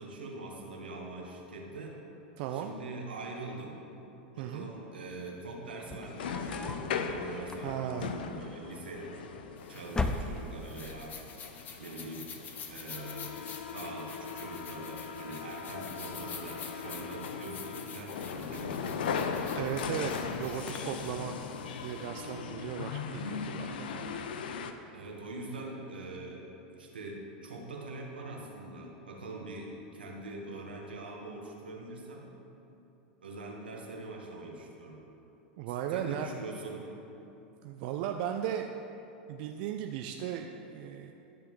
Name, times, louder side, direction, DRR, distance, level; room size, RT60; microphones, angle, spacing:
voice 1, 0.0-2.0 2.5-3.8 4.4-9.1 9.7-11.2 11.8-12.3 12.7-13.4 13.7-19.1 24.9-26.5 26.8-32.3 33.2-35.0 35.7-36.9, right 2 dB, 90° right, -1 dB, 1.4 m, -43 dB
voice 2, 2.4-2.7 4.4-4.7 7.6-8.3 19.6-21.4 21.8-24.9 35.6-36.3 37.6-38.7 39.3-41.1, right 10 dB, 60° right, 4 dB, 0.4 m, -37 dB
sound 1, 5.7-6.9 7.4-8.1 9.0-9.5 9.9-10.8, left 3 dB, 15° left, 0.5 m, -36 dB
sound 2, 6.1-24.7, left 6 dB, 75° left, 0.5 m, -39 dB
sound 3, 9.6-22.0, left 6 dB, 35° left, 0.9 m, -48 dB
12.5 x 6.9 x 3.1 m, 3.0 s
hypercardioid pair, 95°, 5 cm